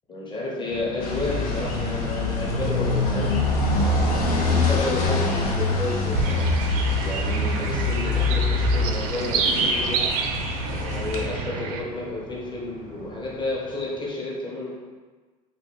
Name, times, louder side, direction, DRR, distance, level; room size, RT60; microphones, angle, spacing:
voice 1, 0.1-3.5 4.3-6.5 7.0-10.0 10.8-14.7, left 2 dB, 25° left, -4 dB, 0.9 m, -31 dB
sound 1, 0.6-14.0, left 1 dB, 60° left, 0.9 m, -43 dB
sound 2, 1.0-11.2, left 3 dB, 85° left, 0.5 m, -25 dB
sound 3, 6.1-11.8, right 5 dB, 75° right, 0.4 m, -27 dB
3.2 x 2.5 x 3.0 m, 1.4 s
hypercardioid pair, 70°, 19 cm